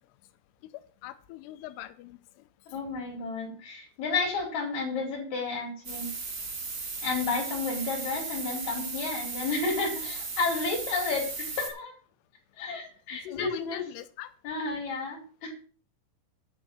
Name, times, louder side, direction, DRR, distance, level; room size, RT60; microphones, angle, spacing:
voice 1, 1.0-2.2 13.3-14.3, left 14 dB, 85° left, 10 dB, 2.4 m, -41 dB
voice 2, 2.7-6.1 7.0-12.0 12.6-13.8 14.4-15.5, left 4 dB, 40° left, -1 dB, 5.1 m, -31 dB
sound 1, 5.8-11.7, right 4 dB, 35° right, 2.0 m, -36 dB
11.5 x 5.3 x 7.0 m, 0.40 s
omnidirectional pair, 5.5 m